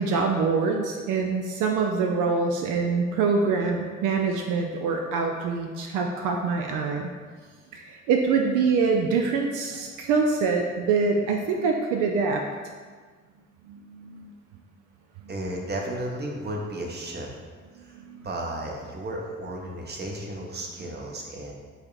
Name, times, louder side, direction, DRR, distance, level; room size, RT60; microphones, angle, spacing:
voice 1, 0.0-7.1 7.7-12.4 13.7-14.3 15.2-15.3 18.0-18.3, right 4 dB, 55° right, 2 dB, 0.5 m, -25 dB
voice 2, 15.3-17.3 17.8-17.9 18.2-21.5, right 1 dB, 25° right, 0 dB, 0.9 m, -33 dB
7.7 x 2.8 x 2.4 m, 1.5 s
figure-of-eight pair, 40°, 38 cm